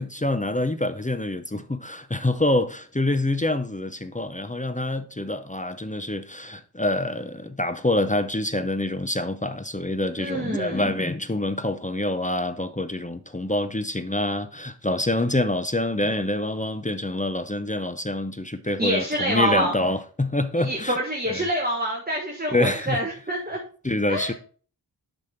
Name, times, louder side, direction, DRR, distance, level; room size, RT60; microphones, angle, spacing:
voice 1, 0.0-21.0 21.3-21.5 22.5-23.0 23.8-24.3, left 1 dB, 20° left, 0.6 m, -26 dB
voice 2, 10.2-10.9 18.8-19.7 20.6-23.6 24.1-24.3, right 1 dB, 20° right, 1.4 m, -26 dB
7.5 x 5.4 x 4.4 m
wide cardioid pair, 40°, 42 cm